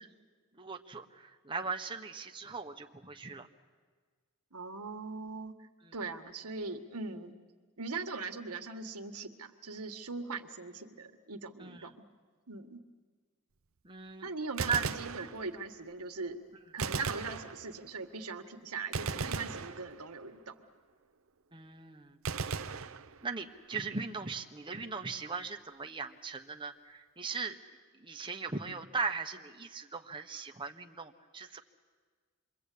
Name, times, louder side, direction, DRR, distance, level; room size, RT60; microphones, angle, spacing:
voice 1, 0.5-3.5 5.8-5.9 11.6-11.9 13.8-14.3 14.6-14.9 21.5-22.2 23.2-27.6 27.9-31.6, right 4 dB, 20° right, 4 dB, 1.2 m, -38 dB
voice 2, 4.5-7.3 7.8-11.9 12.5-12.8 14.2-16.4 16.7-20.5, right 4 dB, 85° right, 6 dB, 1.7 m, -41 dB
Gunshot gunfire, 14.4-15.8 16.8-18.0 18.9-20.4 22.3-23.6, right 5 dB, 60° right, 0.8 m, -37 dB
27.5 x 23.0 x 8.5 m, 1.5 s
head